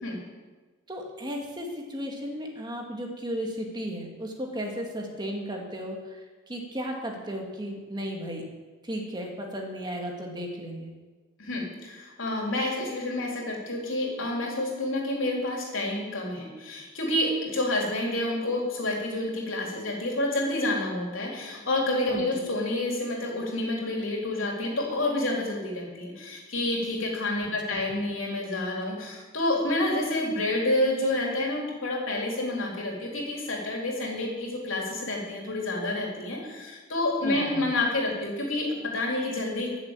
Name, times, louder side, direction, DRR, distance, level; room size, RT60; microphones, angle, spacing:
voice 1, 0.9-8.4 8.8-10.9 22.1-22.4 27.7-27.8 37.2-37.6, equal, 20° right, 1 dB, 2.0 m, -35 dB
voice 2, 11.4-39.7, left 1 dB, 70° left, -1 dB, 3.5 m, -29 dB
13.5 x 7.2 x 7.4 m, 1.3 s
head